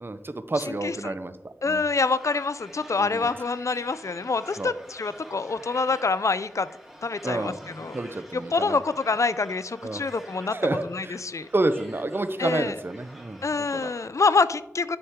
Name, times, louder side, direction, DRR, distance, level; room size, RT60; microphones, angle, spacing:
voice 1, 0.0-1.8 3.0-3.3 4.6-4.7 7.2-8.8 9.8-10.0 10.4-11.2 11.5-13.9, right 2 dB, 45° right, 11 dB, 0.6 m, -29 dB
voice 2, 0.6-1.1 1.6-6.7 7.0-8.0 8.3-10.6 10.9-11.5 12.4-12.7 13.4-15.0, left 4 dB, 75° left, 15 dB, 0.4 m, -26 dB
sound 1, 2.0-14.1, equal, 5° right, 2.7 m, -48 dB
9.6 x 5.8 x 3.6 m, 0.93 s
wide cardioid pair, 45°, 5 cm